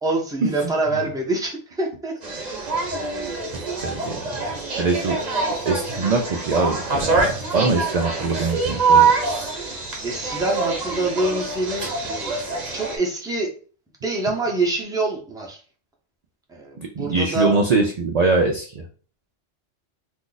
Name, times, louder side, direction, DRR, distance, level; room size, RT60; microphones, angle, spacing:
voice 1, 0.0-2.1 3.1-3.3 10.0-12.4 12.7-13.5 14.0-15.6 16.5-17.6, right 2 dB, 5° right, -1 dB, 0.5 m, -25 dB
sound 1, 2.2-13.0, right 4 dB, 40° right, 0.9 m, -24 dB
voice 2, 3.8-4.4 4.8-5.2 5.7-9.1 16.8-18.8, right 3 dB, 65° right, 3 dB, 0.4 m, -23 dB
2.6 x 2.4 x 3.8 m, 0.40 s
omnidirectional pair, 1.2 m